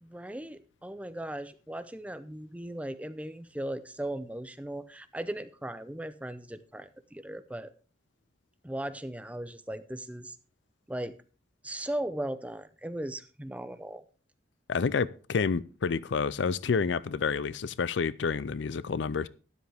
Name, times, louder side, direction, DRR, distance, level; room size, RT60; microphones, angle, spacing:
voice 1, 0.0-7.7 8.6-10.4 10.9-11.1 11.6-14.0, right 1 dB, 5° right, 0.6 m, -37 dB
voice 2, 14.7-19.3, left 5 dB, 65° left, 0.4 m, -29 dB
12.5 x 10.5 x 3.4 m
head